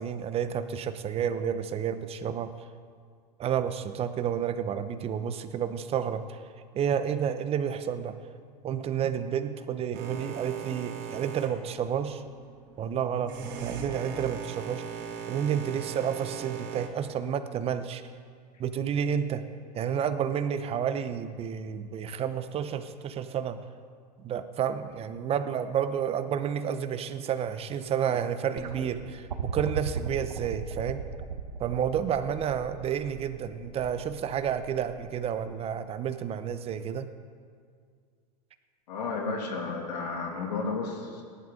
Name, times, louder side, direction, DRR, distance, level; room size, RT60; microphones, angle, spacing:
voice 1, 0.0-2.5 3.4-6.4 6.7-8.1 8.6-12.2 12.8-14.8 15.3-18.0 18.6-19.4 19.7-23.6 24.2-31.1 31.6-37.1, right 8 dB, 30° right, 10 dB, 0.9 m, -30 dB
Boat Water vehicle, 9.9-16.9, right 6 dB, 55° right, 2.4 m, -39 dB
sound 1, 28.6-35.7 36.9-37.0, right 6 dB, 90° right, 1.2 m, -37 dB
voice 2, 38.9-41.2, left 4 dB, 80° left, 1 dB, 2.7 m, -32 dB
18.5 x 11.5 x 3.8 m, 2.1 s
hypercardioid pair, 110°, 21 cm